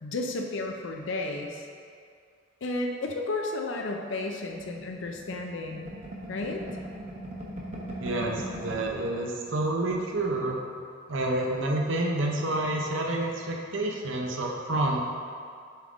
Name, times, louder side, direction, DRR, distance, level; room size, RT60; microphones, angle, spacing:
voice 1, 0.0-1.7 2.6-5.9 6.3-6.6, left 2 dB, 75° left, 2 dB, 0.6 m, -32 dB
sound 1, 4.6-9.1 9.5-9.6 9.8-10.4, right 1 dB, 35° right, 1.0 m, -39 dB
voice 2, 8.0-10.6 11.1-15.0, right 1 dB, 85° right, 0 dB, 0.8 m, -28 dB
7.3 x 3.6 x 3.7 m, 2.3 s
head